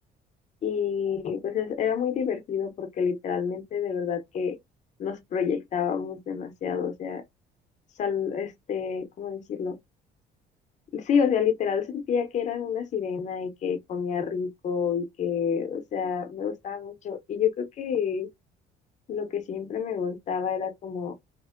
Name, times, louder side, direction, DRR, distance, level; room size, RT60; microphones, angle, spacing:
voice 1, 0.6-4.6 5.0-7.2 8.0-9.8 10.9-18.3 19.1-21.1, left 7 dB, 45° left, 0.6 m, -28 dB
2.8 x 2.0 x 2.4 m
cardioid pair, 110°, 17 cm